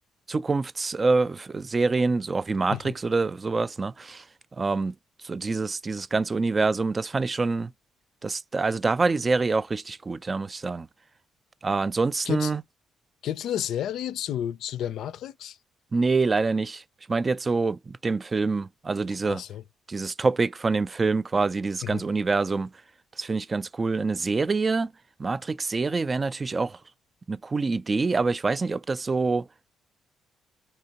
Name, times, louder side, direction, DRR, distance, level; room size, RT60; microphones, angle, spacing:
voice 1, 0.3-4.2 4.6-4.9 5.2-7.7 8.2-10.9 11.6-12.6 15.9-16.8 17.1-19.4 19.9-22.7 23.2-24.9 25.2-26.8 27.3-29.5, right 3 dB, 35° right, 0.3 m, -26 dB
voice 2, 13.2-15.6 19.2-19.6 21.8-22.0, left 11 dB, 65° left, 0.4 m, -31 dB
3.5 x 2.8 x 2.8 m
hypercardioid pair, 50°, 0 cm